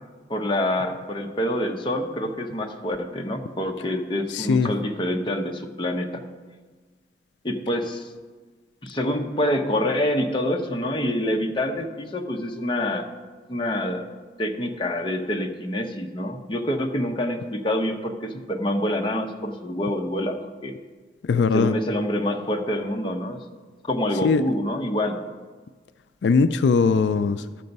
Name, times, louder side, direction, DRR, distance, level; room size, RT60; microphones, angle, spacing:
voice 1, 0.3-6.2 7.4-8.1 8.8-13.1 13.5-14.1 14.4-20.8 21.5-23.4 23.9-25.2, left 1 dB, 30° left, 3 dB, 0.8 m, -26 dB
voice 2, 4.3-4.7 21.2-21.8 24.2-24.4 26.2-27.5, left 5 dB, 85° left, 12 dB, 0.4 m, -20 dB
12.0 x 6.8 x 5.3 m, 1.4 s
head